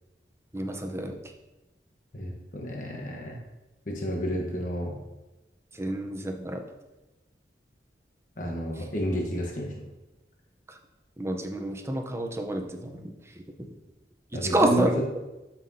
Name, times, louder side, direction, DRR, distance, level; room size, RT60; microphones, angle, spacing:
voice 1, 0.5-1.2 4.3-4.4 5.8-6.6 11.2-13.0 14.4-14.9, right 1 dB, 15° right, 3 dB, 0.7 m, -28 dB
voice 2, 2.1-3.4 3.9-5.0 8.4-9.8 14.3-15.0, equal, 45° left, -1 dB, 1.1 m, -30 dB
12.5 x 5.8 x 2.8 m, 1.1 s
head